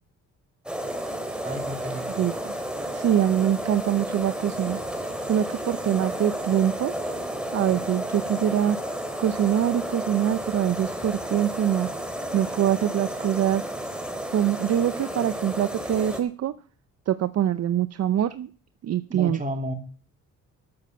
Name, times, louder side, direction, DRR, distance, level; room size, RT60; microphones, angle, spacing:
sound 1, 0.7-16.2, right 1 dB, 5° right, 3.2 m, -32 dB
voice 1, 1.4-2.3 19.1-19.7, right 1 dB, 25° right, 5 dB, 3.0 m, -32 dB
voice 2, 2.9-4.8 5.3-6.9 7.5-8.9 9.2-11.9 12.3-13.7 14.3-16.5 17.1-18.5 18.8-19.4, right 10 dB, 55° right, 13 dB, 0.7 m, -24 dB
12.5 x 8.5 x 6.8 m, 0.41 s
cardioid pair, 90°, 30 cm